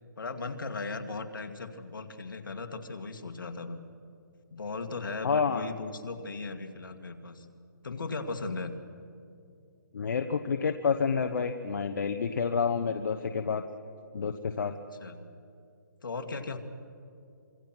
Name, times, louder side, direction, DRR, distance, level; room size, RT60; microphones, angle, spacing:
voice 1, 0.2-3.8 4.5-7.5 7.8-8.7 15.0-15.2 16.0-16.6, left 3 dB, 75° left, 6 dB, 2.3 m, -37 dB
voice 2, 5.2-5.7 9.9-13.6 14.1-14.7, left 5 dB, 60° left, 6 dB, 1.1 m, -29 dB
26.0 x 24.0 x 6.1 m, 2.5 s
hypercardioid pair, 165°, 11 cm